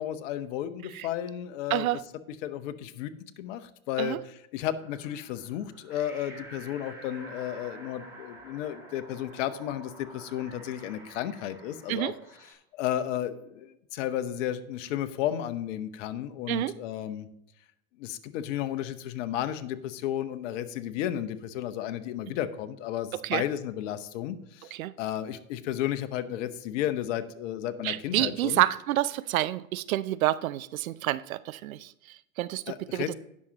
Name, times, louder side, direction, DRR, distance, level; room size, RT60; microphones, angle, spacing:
voice 1, 0.0-1.9 2.4-12.1 12.7-17.3 18.0-28.6 32.7-33.1, left 11 dB, 60° left, 11 dB, 1.0 m, -33 dB
voice 2, 1.7-2.0 4.0-4.2 11.9-12.1 16.5-16.7 23.1-23.4 24.7-24.9 27.8-33.1, right 15 dB, 80° right, 16 dB, 0.6 m, -29 dB
sound 1, 4.8-12.5, right 1 dB, 5° right, 4.2 m, -49 dB
18.0 x 6.4 x 2.9 m, 0.79 s
hypercardioid pair, 95°, 41 cm